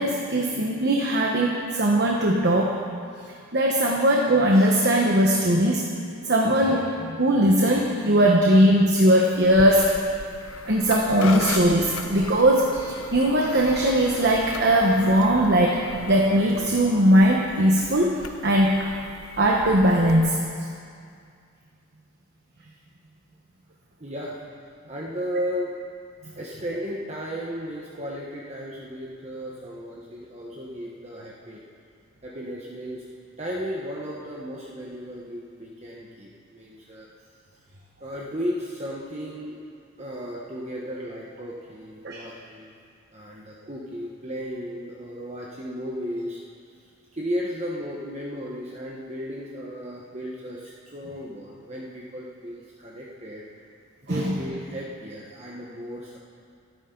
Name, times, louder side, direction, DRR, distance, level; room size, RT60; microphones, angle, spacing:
voice 1, 0.0-2.8 3.5-5.8 6.3-10.0 10.7-15.8 16.1-18.1 18.4-18.9 19.4-20.4 42.0-42.2 54.1-54.3, right 1 dB, 50° right, -1 dB, 1.2 m, -20 dB
sound 1, 9.4-20.1, left 3 dB, 75° left, 0.9 m, -38 dB
voice 2, 24.0-24.4 24.9-25.7 26.2-31.6 32.2-33.1 33.4-37.1 38.0-39.6 40.0-42.8 43.1-46.4 47.1-53.4 54.0-56.2, equal, 30° right, -4 dB, 1.2 m, -34 dB
27.5 x 10.0 x 4.0 m, 2.3 s
head